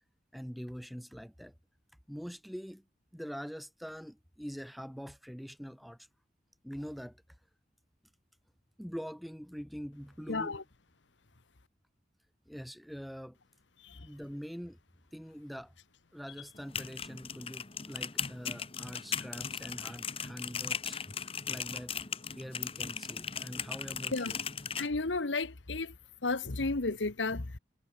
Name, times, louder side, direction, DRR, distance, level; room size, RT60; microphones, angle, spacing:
voice 1, 0.3-1.5 2.1-2.8 3.1-6.1 6.6-7.2 8.8-10.5 12.5-13.4 13.9-14.8 15.1-15.7 16.1-22.0 22.3-24.4, equal, ahead, 1.1 m, -44 dB
voice 2, 10.3-10.6 13.8-14.1 24.1-24.3 24.8-25.9 26.2-27.6, left 3 dB, 85° left, 1.3 m, -33 dB
sound 1, 16.6-24.9, left 7 dB, 30° left, 1.4 m, -38 dB
head